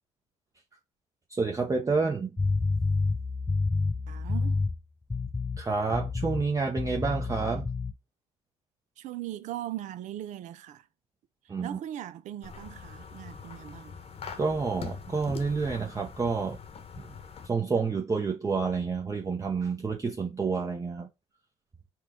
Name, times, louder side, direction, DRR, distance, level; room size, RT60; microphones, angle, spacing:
voice 1, 1.3-2.3 5.6-7.7 11.5-11.8 14.4-16.6 17.0-17.1 17.4-21.1, right 4 dB, 25° right, 0.8 m, -29 dB
sound 1, 2.4-4.8 5.1-5.6 5.9-6.5 6.8-7.9, left 3 dB, 15° left, 0.6 m, -29 dB
voice 2, 4.1-4.7 9.0-10.9 11.6-14.0, right 12 dB, 60° right, 0.5 m, -39 dB
sound 2, 12.4-17.5, left 5 dB, 45° left, 1.0 m, -43 dB
4.4 x 2.3 x 3.6 m
hypercardioid pair, 60°, 14 cm